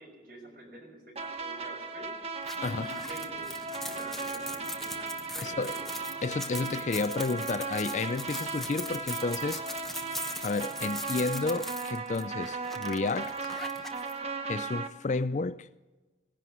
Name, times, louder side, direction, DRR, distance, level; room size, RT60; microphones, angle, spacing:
voice 1, 0.0-2.1 2.6-6.0, right 1 dB, 50° right, 5.4 m, -48 dB
sound 1, 1.2-14.9, right 4 dB, 35° right, 1.2 m, -37 dB
sound 2, 2.4-14.1, left 1 dB, ahead, 0.8 m, -41 dB
sound 3, 2.4-11.3, right 1 dB, 15° right, 1.6 m, -54 dB
voice 2, 5.4-5.7 6.2-9.6 10.4-13.5 14.5-15.7, left 3 dB, 40° left, 0.4 m, -31 dB
19.5 x 11.0 x 6.1 m
head